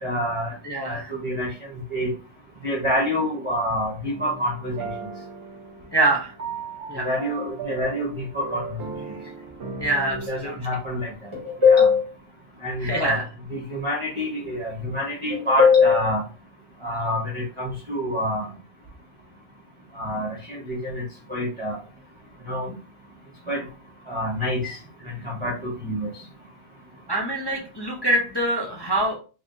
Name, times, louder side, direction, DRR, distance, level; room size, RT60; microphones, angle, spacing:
voice 1, 0.0-0.5 0.8-1.5 1.9-2.1 2.6-4.7 7.0-8.6 10.3-12.0 12.6-13.2 13.5-16.2 16.8-18.4 20.0-21.0 21.3-21.8 22.5-22.7 23.5-23.6 24.1-24.8 25.2-26.1, left 3 dB, 25° right, -4 dB, 0.9 m, -24 dB
voice 2, 0.6-1.1 5.9-6.3 6.9-7.1 9.8-10.5 12.8-13.2 27.1-29.2, right 1 dB, 25° left, -3 dB, 0.6 m, -24 dB
sound 1, 4.0-10.3, right 5 dB, 55° right, 0.9 m, -37 dB
3.5 x 3.3 x 2.6 m, 0.36 s
omnidirectional pair, 1.4 m